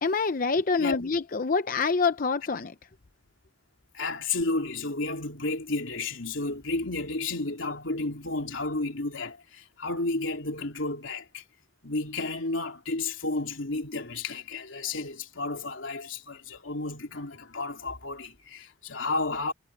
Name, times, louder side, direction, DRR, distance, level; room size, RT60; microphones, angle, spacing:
voice 1, 0.0-2.7, left 4 dB, 45° left, 0.6 m, -26 dB
voice 2, 3.9-11.4 11.8-19.5, left 3 dB, 90° left, 3.1 m, -32 dB
head